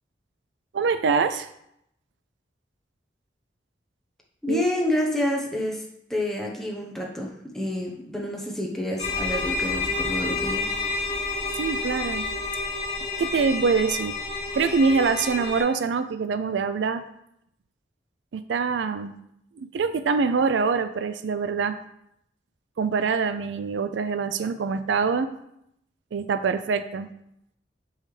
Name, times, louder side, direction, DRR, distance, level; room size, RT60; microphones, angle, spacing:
voice 1, 0.7-1.5 4.5-4.6 11.6-12.3 13.2-14.1 14.5-17.0 18.3-19.2 19.6-21.8 22.8-25.3 26.1-27.1, right 5 dB, 80° right, 11 dB, 0.4 m, -24 dB
voice 2, 4.4-5.8 6.1-10.7, left 1 dB, ahead, -2 dB, 1.0 m, -28 dB
sound 1, 9.0-15.6, left 3 dB, 30° left, 2.0 m, -29 dB
6.4 x 5.5 x 3.3 m, 0.77 s
head